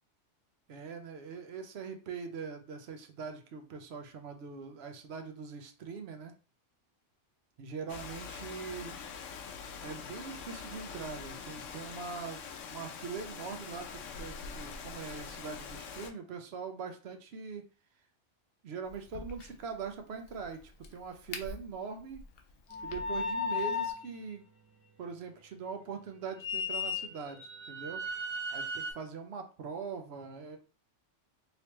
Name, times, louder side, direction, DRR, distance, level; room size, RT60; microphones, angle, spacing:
voice 1, 0.7-6.3 7.6-9.0 9.8-17.6 18.6-22.2 22.8-24.5 25.0-27.4 27.7-28.0 28.5-30.6, right 5 dB, 65° right, 6 dB, 0.8 m, -42 dB
Rain, 7.9-16.1, left 6 dB, 80° left, 0.9 m, -44 dB
Crack, 18.8-23.9, left 4 dB, 60° left, 0.7 m, -49 dB
sound 1, 22.7-24.0 26.4-28.9, left 3 dB, 20° right, 0.5 m, -35 dB
3.2 x 3.0 x 2.9 m, 0.35 s
omnidirectional pair, 1.3 m